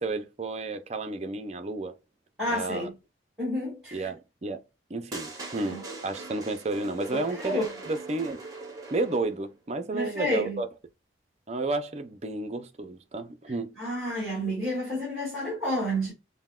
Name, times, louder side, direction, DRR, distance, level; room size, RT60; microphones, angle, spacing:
voice 1, 0.0-1.9 2.5-2.9 3.9-4.6 4.9-8.4 8.9-10.7 11.5-13.7, right 3 dB, 35° right, 0.5 m, -32 dB
voice 2, 2.4-2.9 3.4-4.1 5.7-5.8 7.1-7.7 9.9-10.6 13.8-16.1, equal, 5° right, 2.2 m, -30 dB
sound 1, 5.1-9.4, right 3 dB, 20° right, 1.0 m, -41 dB
5.6 x 2.1 x 2.3 m
head